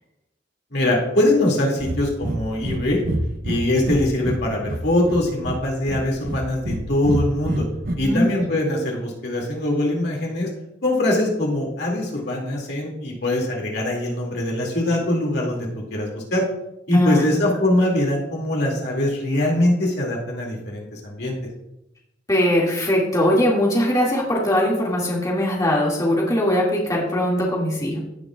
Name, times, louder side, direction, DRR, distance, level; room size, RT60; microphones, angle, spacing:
voice 1, 0.7-3.0 3.4-7.6 8.0-10.5 10.8-16.4 16.9-21.3, left 1 dB, 60° left, -1 dB, 2.4 m, -22 dB
Breathing, 1.8-2.4 2.6-2.8 3.0-4.4 4.7-5.6 5.9-6.8 7.0-8.0, right 1 dB, 50° right, 0.9 m, -26 dB
voice 2, 22.3-28.0, equal, 20° left, -4 dB, 2.1 m, -20 dB
16.5 x 6.8 x 2.4 m, 0.85 s
head